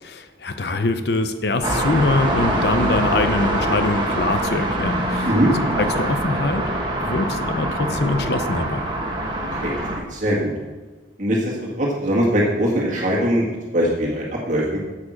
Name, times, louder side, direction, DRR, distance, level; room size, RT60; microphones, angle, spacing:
voice 1, 0.0-5.3 5.8-6.6 7.1-8.9, left 2 dB, 60° left, 8 dB, 0.6 m, -23 dB
sound 1, 1.6-10.0, right 1 dB, 25° right, 1.6 m, -24 dB
voice 2, 9.5-10.5 11.2-14.6, equal, 40° right, -4 dB, 1.8 m, -21 dB
8.4 x 7.5 x 6.3 m, 1.3 s
head